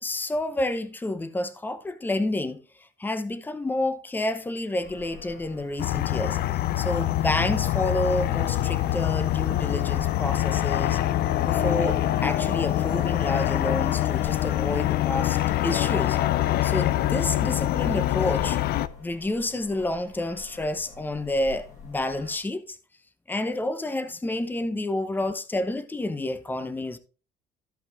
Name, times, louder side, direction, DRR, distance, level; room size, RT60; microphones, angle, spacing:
voice 1, 0.0-2.6 3.0-6.4 6.8-11.0 11.4-16.2 16.6-18.6 19.0-22.8 23.3-27.0, left 1 dB, 10° left, 0.8 m, -29 dB
sound 1, 4.8-22.4, left 3 dB, 45° left, 5.4 m, -47 dB
sound 2, 5.8-18.9, left 14 dB, 70° left, 0.6 m, -25 dB
14.0 x 5.4 x 3.6 m
cardioid pair, 110°, 17 cm